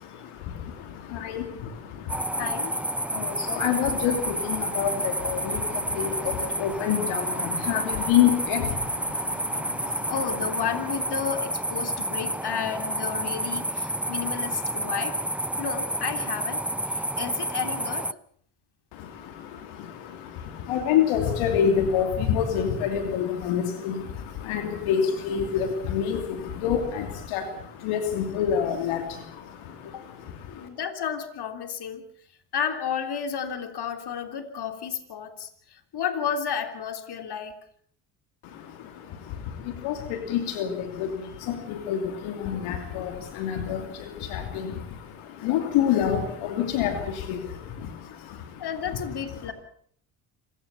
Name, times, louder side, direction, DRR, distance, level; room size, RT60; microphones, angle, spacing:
voice 1, 0.0-2.5 3.0-10.1 18.9-30.7 38.4-48.7 48.9-49.0 49.4-49.5, left 8 dB, 80° left, 6 dB, 2.9 m, -28 dB
sound 1, 2.1-18.1, right 1 dB, 5° right, 0.8 m, -30 dB
voice 2, 2.3-2.8 10.1-15.2 15.6-18.1 29.9-30.1 30.5-32.0 32.5-37.6 48.6-49.5, left 7 dB, 55° left, 8 dB, 3.4 m, -32 dB
26.5 x 16.5 x 7.1 m, 0.62 s
hypercardioid pair, 55°, 48 cm